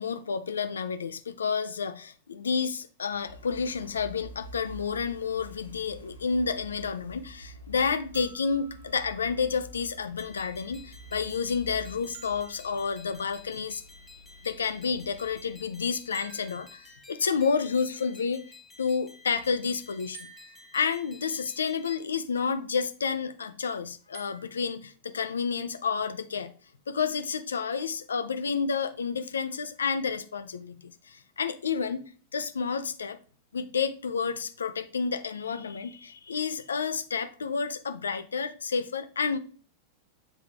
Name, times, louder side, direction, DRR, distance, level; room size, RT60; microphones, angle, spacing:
voice 1, 0.0-13.8 14.4-18.4 18.8-20.3 20.7-26.5 26.9-32.0 32.3-33.2 33.5-39.4, left 5 dB, 70° left, 0.6 m, -30 dB
sound 1, 3.1-17.0, equal, 90° left, 1.5 m, -48 dB
sound 2, 8.1-10.1 12.1-13.9 16.1-17.5 20.1-21.4 24.1-24.6, right 7 dB, 50° right, 1.1 m, -53 dB
sound 3, 10.2-22.0, left 4 dB, 10° left, 1.4 m, -53 dB
7.5 x 3.4 x 4.7 m
figure-of-eight pair, 90°, 0 cm